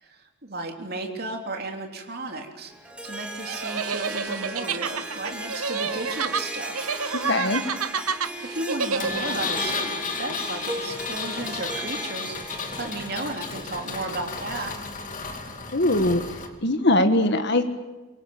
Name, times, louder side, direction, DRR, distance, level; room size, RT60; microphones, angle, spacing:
voice 1, 0.0-2.7 3.0-6.9 8.5-14.8, right 2 dB, 45° right, 3 dB, 3.4 m, -34 dB
Harp, 2.7-13.2, right 1 dB, 5° right, 2.7 m, -36 dB
sound 1, 3.5-9.5, right 6 dB, 85° right, 1.1 m, -29 dB
voice 2, 7.3-7.6 15.7-16.2 16.6-17.6, left 1 dB, 50° left, 7 dB, 1.6 m, -21 dB
Engine, 9.0-16.5, left 4 dB, 35° left, 2.5 m, -33 dB
25.0 x 22.5 x 8.9 m, 1.2 s
head